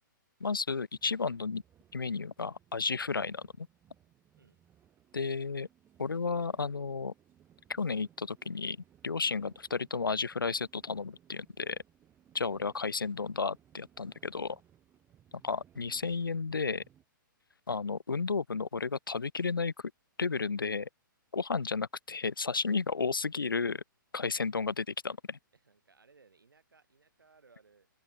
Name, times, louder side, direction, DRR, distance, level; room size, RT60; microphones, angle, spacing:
voice 1, 0.4-1.6 1.9-3.7 5.1-5.7 6.0-7.1 7.7-8.8 9.0-11.8 12.3-14.6 15.4-16.8 17.7-19.7 20.2-20.9 21.3-23.8 24.1-25.4, left 4 dB, 85° left, 0.6 m, -33 dB
sound 1, 0.9-17.0, right 10 dB, 20° right, 3.1 m, -64 dB
voice 2, 25.5-27.9, right 4 dB, 75° right, 4.9 m, -63 dB
open air
figure-of-eight pair, 120°, 11 cm